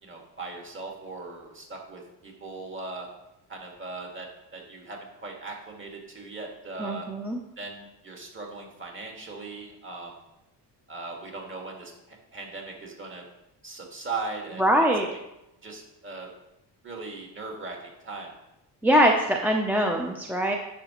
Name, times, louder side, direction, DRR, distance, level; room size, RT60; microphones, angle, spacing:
voice 1, 0.0-3.1 3.5-7.1 7.6-10.2 10.9-13.2 13.6-14.6 15.1-15.2 15.6-16.3 16.8-18.3, right 3 dB, 25° right, 0 dB, 2.0 m, -39 dB
voice 2, 6.8-7.4 14.6-15.1 18.8-20.6, equal, 5° right, 0 dB, 0.6 m, -22 dB
10.5 x 5.9 x 3.0 m, 0.90 s
cardioid pair, 120°, 43 cm